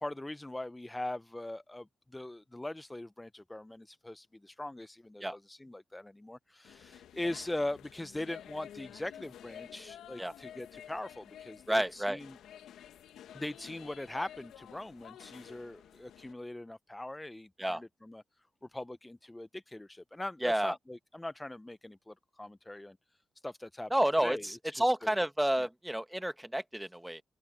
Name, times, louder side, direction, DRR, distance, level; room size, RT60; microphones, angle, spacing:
voice 1, 0.0-12.4 13.3-18.2 18.7-23.0 23.4-23.9 24.2-25.2 25.6-25.7, left 1 dB, 15° left, 0.6 m, -41 dB
sound 1, 6.6-16.3, left 10 dB, 75° left, 1.6 m, -51 dB
voice 2, 11.7-12.2 17.6-17.8 20.4-20.7 23.9-27.2, right 1 dB, 5° right, 1.6 m, -30 dB
open air
supercardioid pair, 45°, 0 cm